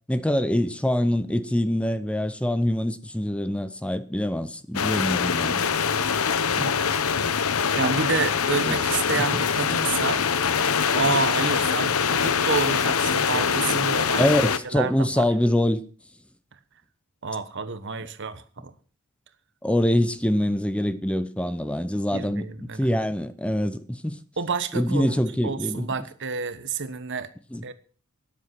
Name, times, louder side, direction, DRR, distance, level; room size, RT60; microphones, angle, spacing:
voice 1, 0.1-5.6 8.7-8.8 14.2-15.8 19.6-22.4 22.8-24.2 24.7-25.9 27.5-27.6, left 1 dB, 5° left, 0.6 m, -24 dB
sound 1, 4.7-14.6, left 6 dB, 90° left, 0.9 m, -23 dB
voice 2, 6.6-7.0 7.7-10.2 10.9-14.3 14.6-15.3 17.2-18.7 22.1-22.9 24.4-27.3 27.6-27.7, right 4 dB, 60° right, 1.2 m, -29 dB
13.0 x 11.0 x 5.9 m
head